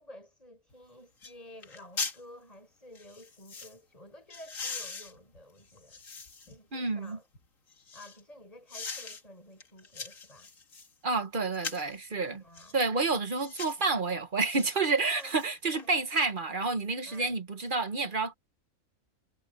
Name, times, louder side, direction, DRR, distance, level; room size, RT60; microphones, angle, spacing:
voice 1, 0.0-6.0 6.5-7.3 7.9-10.5 12.3-13.0 14.9-15.4 15.6-16.0 17.0-17.4, left 1 dB, 25° left, 6.9 m, -52 dB
sound 1, 0.7-0.8 1.2-1.4 1.6-2.2 2.9-3.7 4.3-6.6 7.1-8.2 8.7-9.2 9.6-10.9 11.5-11.9 12.5-12.8 13.4-13.8 14.5-14.7 15.0-15.9 16.2-16.3, left 4 dB, 70° left, 2.3 m, -41 dB
voice 2, 6.7-7.2 11.0-12.4 12.7-18.3, right 3 dB, 40° right, 1.2 m, -29 dB
omnidirectional pair, 1.4 m